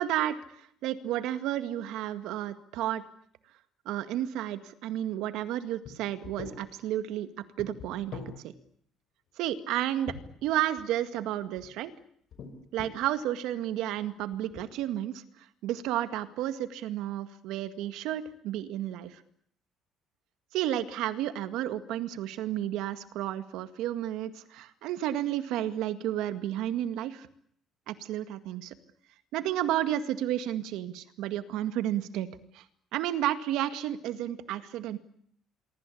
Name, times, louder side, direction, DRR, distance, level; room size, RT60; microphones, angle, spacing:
voice 1, 0.0-3.0 3.9-7.3 7.6-8.5 9.4-10.1 10.4-11.9 12.7-15.2 15.6-19.2 20.5-27.3 27.9-28.7 29.3-32.3 32.5-32.6 32.9-35.0, right 12 dB, 75° right, 11 dB, 2.0 m, -32 dB
sound 1, 5.8-5.9 6.2-6.6 7.6-8.3 10.1-10.8 11.4-11.7 12.3-13.1 13.8-14.0 14.3-14.6, left 6 dB, 50° left, 5.8 m, -43 dB
26.0 x 24.0 x 8.6 m, 0.67 s
cardioid pair, 155°, 0 cm